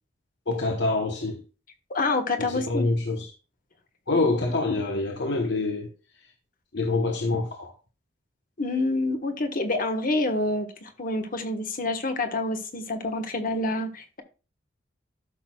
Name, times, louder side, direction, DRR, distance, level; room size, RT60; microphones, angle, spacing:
voice 1, 0.5-1.4 2.4-3.3 4.1-5.9 6.7-7.7, left 3 dB, 65° left, 1.0 m, -26 dB
voice 2, 1.9-2.9 8.6-14.2, left 2 dB, 50° left, 1.3 m, -27 dB
13.0 x 6.1 x 2.3 m
head